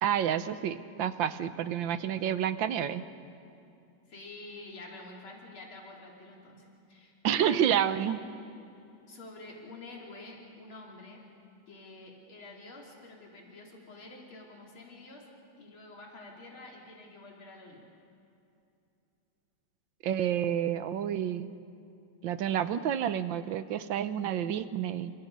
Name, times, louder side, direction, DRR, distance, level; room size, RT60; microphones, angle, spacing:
voice 1, 0.0-3.0 7.2-8.2 20.0-21.5 22.2-25.1, right 9 dB, 75° right, 12 dB, 1.5 m, -29 dB
voice 2, 4.1-8.1 9.1-11.2 11.7-15.2 15.6-17.9, left 2 dB, 90° left, -1 dB, 3.9 m, -48 dB
29.0 x 26.0 x 5.4 m, 2.7 s
omnidirectional pair, 2.2 m